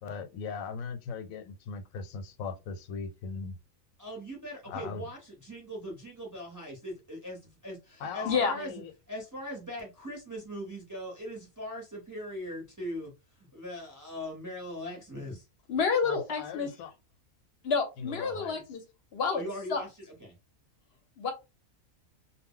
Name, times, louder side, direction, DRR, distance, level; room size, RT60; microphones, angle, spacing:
voice 1, 0.0-3.6 4.7-5.1 8.0-8.9 16.0-16.9 18.0-18.6, left 5 dB, 90° left, 1.0 m, -39 dB
voice 2, 4.0-7.4 7.6-8.8 9.1-13.1 13.4-15.5 19.3-20.3, equal, 20° right, 0.5 m, -40 dB
voice 3, 15.7-16.7 17.6-18.8 19.1-19.4 19.7-19.8 21.2-21.3, left 5 dB, 60° left, 0.7 m, -28 dB
2.1 x 2.1 x 3.6 m
omnidirectional pair, 1.4 m